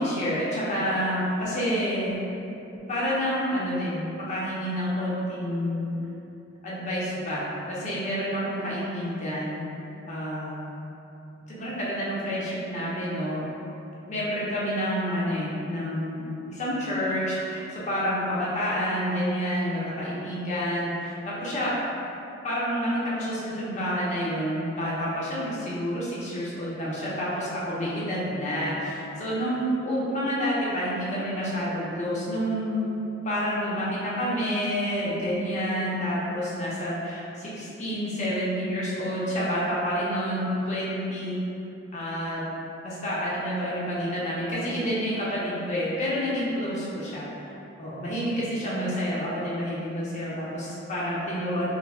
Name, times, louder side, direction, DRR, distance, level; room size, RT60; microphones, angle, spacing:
voice 1, 0.0-2.2 2.9-4.0 4.3-5.9 6.6-9.6 10.1-10.6 11.5-13.4 14.1-21.7 22.4-32.9 33.2-41.4 41.9-42.4 42.8-47.5 47.8-51.8, equal, 35° left, -8 dB, 0.5 m, -28 dB
3.8 x 2.1 x 2.3 m, 2.9 s
head